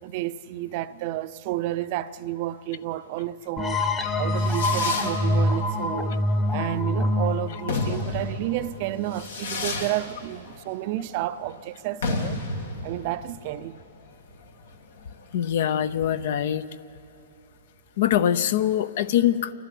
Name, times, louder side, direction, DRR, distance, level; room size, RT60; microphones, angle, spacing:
voice 1, 0.0-12.4 12.8-13.8, right 14 dB, 45° right, 0.6 m, -31 dB
sound 1, 3.6-9.0, left 1 dB, 15° left, 1.2 m, -25 dB
Fireworks, 4.0-16.2, left 3 dB, 85° left, 2.8 m, -33 dB
voice 2, 15.3-16.7 18.0-19.5, left 10 dB, 60° left, 0.7 m, -23 dB
28.5 x 12.5 x 8.5 m
hypercardioid pair, 135°, 0 cm